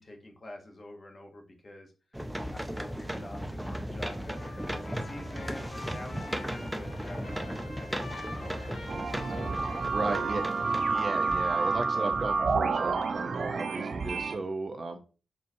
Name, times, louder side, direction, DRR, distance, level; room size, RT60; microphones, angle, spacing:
voice 1, 0.0-1.9 2.5-9.6 10.0-10.4, left 1 dB, 40° left, 2 dB, 0.9 m, -47 dB
sound 1, 2.1-12.5 13.0-13.1, equal, 5° right, 0.5 m, -37 dB
Trumpet, 4.3-12.4, left 2 dB, 75° left, 2.0 m, -46 dB
sound 2, 8.9-14.4, right 4 dB, 60° right, 0.3 m, -29 dB
voice 2, 9.9-10.4 10.9-15.0, right 3 dB, 45° right, 5 dB, 0.7 m, -35 dB
4.3 x 3.1 x 2.7 m, 0.35 s
cardioid pair, 85°, 0 cm